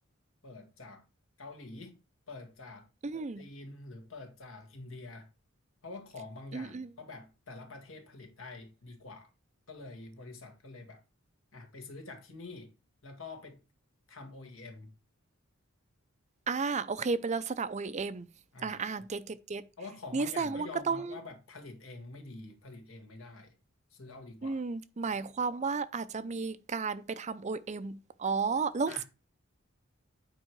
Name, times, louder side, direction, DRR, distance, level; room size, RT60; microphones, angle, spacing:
voice 1, 0.4-1.0 1.4-2.0 2.3-2.9 3.4-5.3 5.8-9.3 9.7-11.0 11.5-12.7 13.0-13.6 14.1-14.9 18.5-18.8 19.8-23.5 23.9-24.6 28.9-29.0, left 3 dB, 75° left, 1.9 m, -46 dB
voice 2, 3.0-3.5 6.5-6.9 16.5-18.3 18.6-19.7 20.1-21.2 24.4-28.9, right 4 dB, 35° right, 0.5 m, -33 dB
8.9 x 4.8 x 4.6 m
head